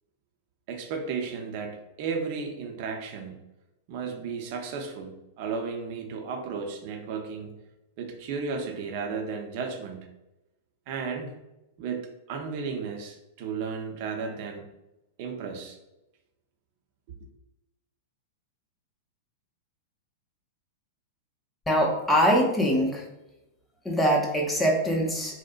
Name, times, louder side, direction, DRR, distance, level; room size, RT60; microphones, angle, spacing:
voice 1, 0.7-3.4 3.9-7.5 8.0-10.0 10.9-11.4 11.8-14.6 15.2-15.8, right 5 dB, 50° right, 4 dB, 0.4 m, -34 dB
voice 2, 21.7-23.0 23.8-25.4, equal, 5° left, -2 dB, 0.5 m, -23 dB
2.6 x 2.0 x 2.3 m, 0.97 s
hypercardioid pair, 100°, 0 cm